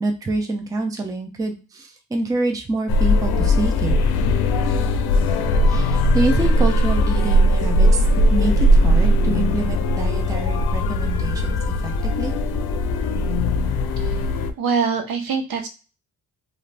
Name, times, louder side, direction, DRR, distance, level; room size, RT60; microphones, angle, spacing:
voice 1, 0.0-3.9 5.7-8.0 8.3-12.3, right 2 dB, 10° right, 4 dB, 0.4 m, -26 dB
sound 1, 2.9-14.5, left 1 dB, 80° left, 0.5 m, -19 dB
voice 2, 14.6-15.7, right 5 dB, 70° right, 5 dB, 0.7 m, -23 dB
2.5 x 2.4 x 3.2 m, 0.32 s
wide cardioid pair, 155°, 37 cm